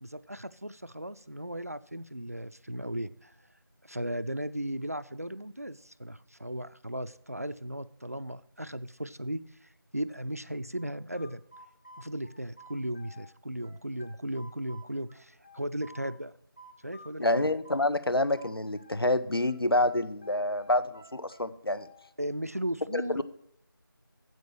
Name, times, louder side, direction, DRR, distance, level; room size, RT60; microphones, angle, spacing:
voice 1, 0.0-3.3 3.8-11.4 12.0-16.3 16.8-17.5 22.2-23.2, right 1 dB, 40° right, 14 dB, 0.4 m, -36 dB
sound 1, 10.8-13.3 13.6-16.2 16.6-19.1 19.5-22.1, equal, 25° left, 0.7 m, -52 dB
voice 2, 17.2-21.9 22.9-23.2, left 1 dB, 85° left, 14 dB, 0.8 m, -27 dB
9.5 x 7.5 x 6.2 m, 0.70 s
figure-of-eight pair, 170°, 12 cm